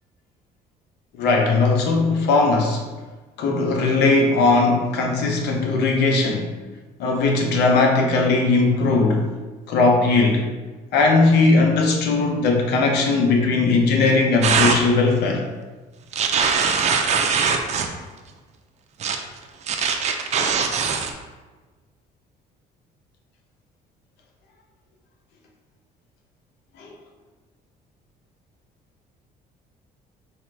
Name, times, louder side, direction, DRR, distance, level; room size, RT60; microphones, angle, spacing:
voice 1, 1.2-2.8 3.4-6.5 7.0-9.3 9.7-10.4 10.9-15.5 20.4-20.9 26.8-26.9, left 3 dB, 80° left, 2 dB, 0.7 m, -19 dB
sound 1, 14.4-14.8 16.1-17.9 19.0-19.2 19.7-21.1, right 6 dB, 40° right, 0.4 m, -21 dB
4.2 x 2.5 x 3.2 m, 1.3 s
cardioid pair, 110°, 17 cm